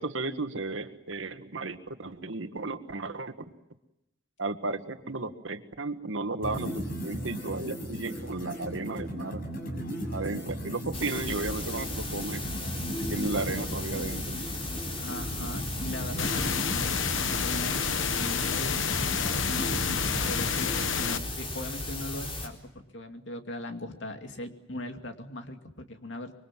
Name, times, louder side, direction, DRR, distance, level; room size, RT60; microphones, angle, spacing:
voice 1, 0.0-3.3 4.4-9.4 10.1-12.4 13.1-14.4, right 3 dB, 85° right, 8 dB, 1.7 m, -34 dB
sound 1, 6.4-21.2, equal, 50° left, 6.7 m, -37 dB
sound 2, 10.9-22.5, left 2 dB, 30° left, 4.2 m, -36 dB
voice 2, 15.0-16.9 17.4-19.5 20.0-26.3, left 1 dB, 70° left, 5 dB, 2.5 m, -39 dB
sound 3, 16.2-21.2, left 7 dB, 90° left, 1.2 m, -29 dB
26.0 x 23.5 x 7.6 m, 0.89 s
head